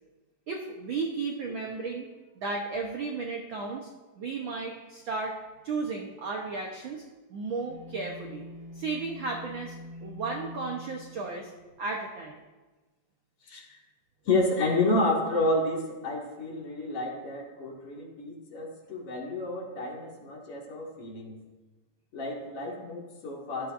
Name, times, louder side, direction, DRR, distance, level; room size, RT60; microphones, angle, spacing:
voice 1, 0.5-2.1 2.4-3.9 4.2-5.4 5.6-7.0 7.3-8.5 8.7-9.8 10.0-11.5 11.8-12.4, right 4 dB, 65° right, 1 dB, 1.2 m, -34 dB
sound 1, 7.7-11.9, left 1 dB, 35° right, 2.9 m, -45 dB
voice 2, 13.4-13.8 14.2-21.4 22.1-23.7, left 2 dB, 50° left, -3 dB, 2.8 m, -30 dB
16.0 x 12.5 x 2.6 m, 1.2 s
omnidirectional pair, 3.4 m